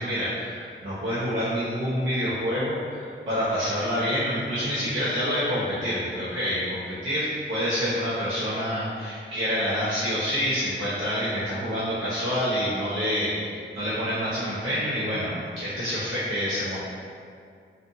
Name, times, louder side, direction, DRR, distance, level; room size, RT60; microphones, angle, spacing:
voice 1, 0.0-13.3 13.7-16.7, equal, 65° right, -13 dB, 0.8 m, -27 dB
2.6 x 2.5 x 2.6 m, 2.3 s
wide cardioid pair, 105°, 21 cm